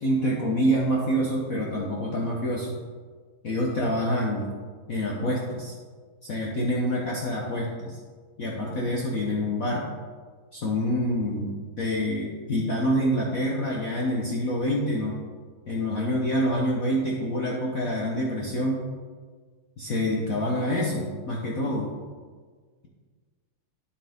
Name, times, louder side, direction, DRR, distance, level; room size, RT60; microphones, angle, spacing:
voice 1, 0.0-2.8 3.4-4.5 4.9-5.7 6.2-8.0 8.4-9.9 10.5-15.2 15.7-18.8 19.8-21.9, equal, 50° left, -3 dB, 1.3 m, -26 dB
12.0 x 7.1 x 3.6 m, 1.5 s
omnidirectional pair, 2.3 m